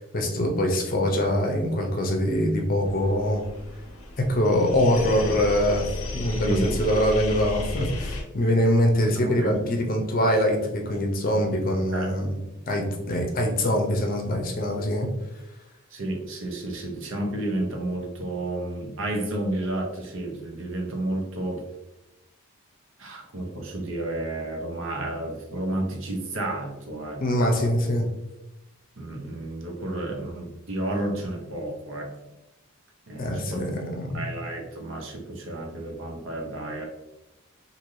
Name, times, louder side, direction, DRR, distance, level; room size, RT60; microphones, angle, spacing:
voice 1, 0.1-3.4 4.2-5.8 6.1-12.4 12.7-15.1 27.2-28.0 33.2-34.3, left 1 dB, 40° left, 1 dB, 0.6 m, -23 dB
sound 1, 2.8-8.2, left 2 dB, 85° left, 0.6 m, -34 dB
voice 2, 6.4-6.8 9.2-9.7 11.9-12.1 15.9-21.6 23.0-27.7 29.0-32.1 33.1-33.7 34.1-36.9, right 1 dB, 65° right, 1 dB, 0.7 m, -31 dB
3.2 x 2.6 x 2.6 m, 0.98 s
head